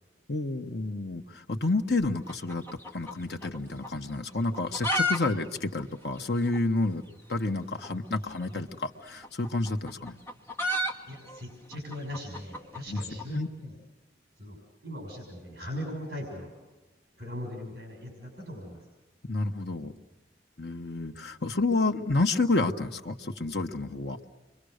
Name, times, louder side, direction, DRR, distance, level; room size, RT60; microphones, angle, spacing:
voice 1, 0.3-2.6 2.9-7.0 7.3-10.2 12.9-13.0 13.3-13.5 19.3-19.9 20.6-24.2, left 2 dB, 70° left, 4 dB, 1.4 m, -29 dB
sound 1, 2.2-3.6 3.8-3.9 4.5-5.2 5.4-5.5 5.8-5.9 6.5-6.6 7.8-7.9 9.1-13.3, left 1 dB, 15° left, 1.8 m, -31 dB
voice 2, 11.1-13.7 14.4-14.6 14.8-16.5 17.2-18.9, equal, 60° right, 2 dB, 6.2 m, -39 dB
29.5 x 23.5 x 6.6 m, 1.2 s
head